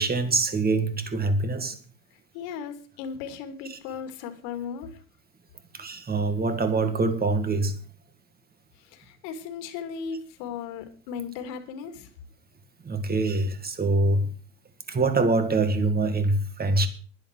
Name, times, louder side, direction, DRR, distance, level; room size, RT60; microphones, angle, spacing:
voice 1, 0.0-1.8 3.7-3.8 5.7-7.8 12.8-14.3 14.9-16.9, right 3 dB, 20° right, 1.9 m, -24 dB
voice 2, 2.3-4.9 8.9-12.1, left 6 dB, 75° left, 2.6 m, -36 dB
11.0 x 10.5 x 6.0 m
supercardioid pair, 120°, 49 cm